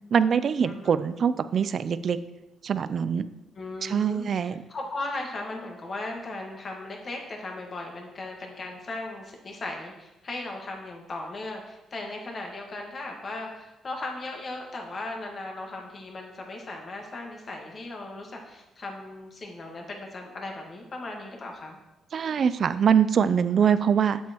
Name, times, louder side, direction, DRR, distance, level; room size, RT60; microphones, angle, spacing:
voice 1, 0.1-2.2 2.6-3.3 3.8-4.6 22.1-24.2, right 7 dB, 55° right, 14 dB, 0.4 m, -23 dB
voice 2, 0.7-1.0 3.5-21.8 23.6-23.7, left 2 dB, 45° left, 1 dB, 1.5 m, -37 dB
7.4 x 7.3 x 3.0 m, 0.99 s
cardioid pair, 90°, 0 cm